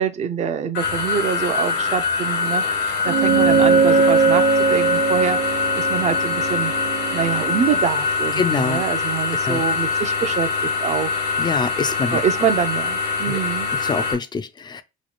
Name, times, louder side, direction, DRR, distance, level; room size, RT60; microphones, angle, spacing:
voice 1, 0.0-6.7 7.1-11.1 12.1-13.7, right 8 dB, 45° right, 0.6 m, -25 dB
sound 1, 0.7-14.1, left 4 dB, 75° left, 1.2 m, -23 dB
sound 2, 3.1-7.8, right 5 dB, 70° right, 1.2 m, -20 dB
voice 2, 8.4-8.8 9.4-9.6 11.4-12.2 13.3-13.4 13.8-14.8, left 5 dB, 25° left, 0.4 m, -25 dB
3.1 x 2.3 x 4.0 m
cardioid pair, 110°, 17 cm